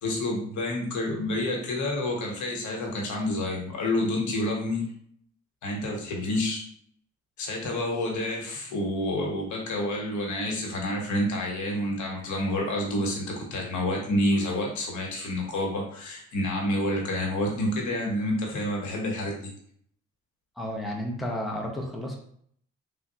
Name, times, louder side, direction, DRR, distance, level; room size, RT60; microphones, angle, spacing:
voice 1, 0.0-4.8 5.6-6.6 7.4-19.5, left 1 dB, 75° left, 0 dB, 1.0 m, -28 dB
voice 2, 20.6-22.1, left 1 dB, ahead, -1 dB, 0.6 m, -32 dB
3.4 x 2.2 x 2.7 m, 0.62 s
cardioid pair, 90°, 30 cm